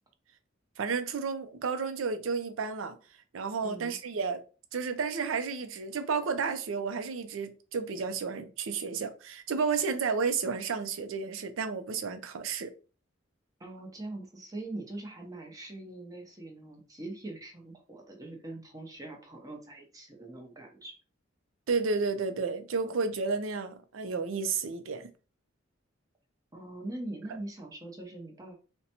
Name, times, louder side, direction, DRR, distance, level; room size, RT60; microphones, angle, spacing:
voice 1, 0.8-3.0 3.3-4.4 4.7-12.7 21.7-25.1, right 5 dB, 90° right, 0.5 m, -32 dB
voice 2, 3.6-4.0 13.6-21.0 26.5-28.6, right 2 dB, 20° right, 0.7 m, -42 dB
3.9 x 2.2 x 2.8 m
head